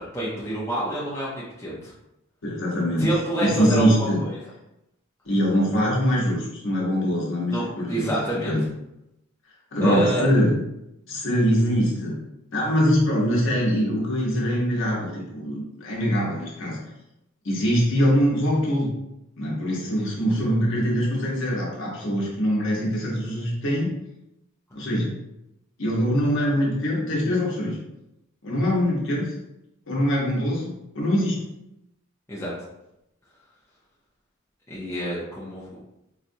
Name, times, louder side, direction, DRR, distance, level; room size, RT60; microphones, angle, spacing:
voice 1, 0.0-1.9 3.0-4.3 7.5-8.5 9.8-10.3 32.3-32.5 34.7-35.7, right 1 dB, 10° left, -8 dB, 0.6 m, -27 dB
voice 2, 2.4-3.1 3.4-4.2 5.3-8.6 9.7-10.5 11.1-12.2 12.5-16.8 17.4-18.9 19.4-23.9 24.7-25.1 25.8-27.8 28.4-29.3 29.9-31.4, equal, 60° left, -4 dB, 0.9 m, -23 dB
4.1 x 2.4 x 2.6 m, 0.87 s
head